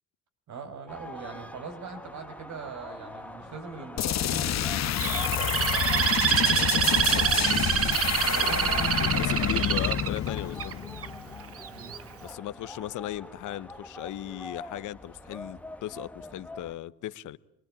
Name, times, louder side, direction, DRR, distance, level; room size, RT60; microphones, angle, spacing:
voice 1, 0.5-9.7 11.7-12.0, right 4 dB, 70° right, 5.2 m, -42 dB
sound 1, 0.9-16.8, left 1 dB, 5° left, 1.4 m, -45 dB
sound 2, 4.0-11.5, left 10 dB, 60° left, 1.1 m, -28 dB
Bird, 5.0-11.1 11.6-12.0, right 9 dB, 50° right, 0.9 m, -26 dB
voice 2, 9.0-10.7 12.2-17.4, left 13 dB, 85° left, 1.0 m, -37 dB
27.0 x 21.0 x 8.8 m
cardioid pair, 90°, 30 cm